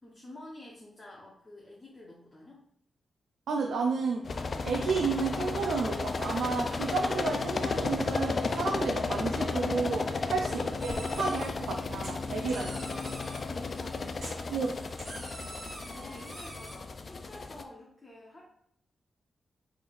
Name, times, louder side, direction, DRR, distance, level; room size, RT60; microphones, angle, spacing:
voice 1, 0.0-2.6 13.5-14.5 15.7-18.4, left 1 dB, 30° left, -4 dB, 0.9 m, -49 dB
voice 2, 3.5-4.2 4.6-13.0 14.5-14.7, right 4 dB, 85° right, 1 dB, 0.4 m, -32 dB
sound 1, 4.2-17.6, left 4 dB, 50° left, 0.3 m, -33 dB
sound 2, 10.8-11.5 12.0-13.4 14.2-16.7, right 1 dB, 60° right, 1.4 m, -45 dB
3.7 x 3.4 x 2.4 m, 0.72 s
cardioid pair, 65°, 0 cm